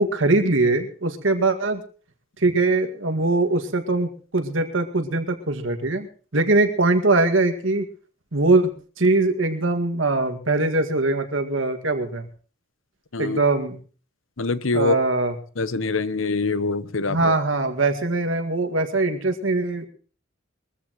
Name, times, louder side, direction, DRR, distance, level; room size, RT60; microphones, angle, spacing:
voice 1, 0.0-1.8 2.4-6.1 6.3-7.9 8.3-8.7 9.0-12.2 13.2-13.8 14.7-15.3 17.1-19.9, right 2 dB, 80° right, 5 dB, 2.0 m, -21 dB
voice 2, 14.4-15.0 15.6-17.4, left 3 dB, 85° left, 15 dB, 1.0 m, -24 dB
22.5 x 14.5 x 3.1 m, 0.39 s
head